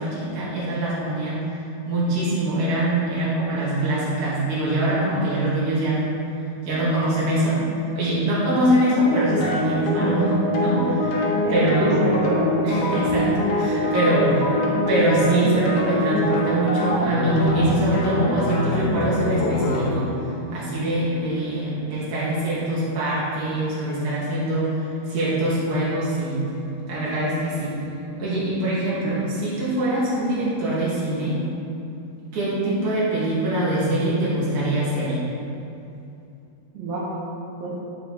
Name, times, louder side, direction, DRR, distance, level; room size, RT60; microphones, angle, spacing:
voice 1, 0.0-1.4 1.9-6.2 6.6-7.6 8.0-11.2 11.5-11.9 12.6-14.4 14.9-20.1 20.5-26.4 26.9-27.8 28.2-31.4 32.3-35.2, right 1 dB, 55° right, -9 dB, 3.6 m, -23 dB
sound 1, 9.0-19.9, left 1 dB, 65° left, 1.6 m, -24 dB
voice 2, 11.4-12.6 12.8-13.0 36.8-37.1 37.6-37.7, right 2 dB, 80° right, -7 dB, 3.5 m, -25 dB
10.5 x 7.5 x 3.6 m, 2.7 s
omnidirectional pair, 4.5 m